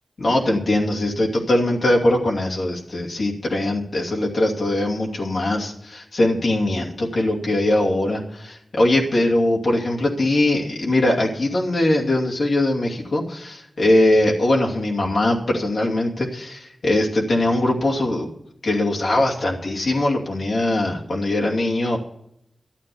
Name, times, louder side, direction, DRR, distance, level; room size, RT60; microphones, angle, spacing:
voice 1, 0.2-18.3 18.6-22.0, left 1 dB, 70° left, -2 dB, 2.7 m, -21 dB
12.0 x 8.8 x 7.0 m, 0.77 s
cardioid pair, 45°, 0 cm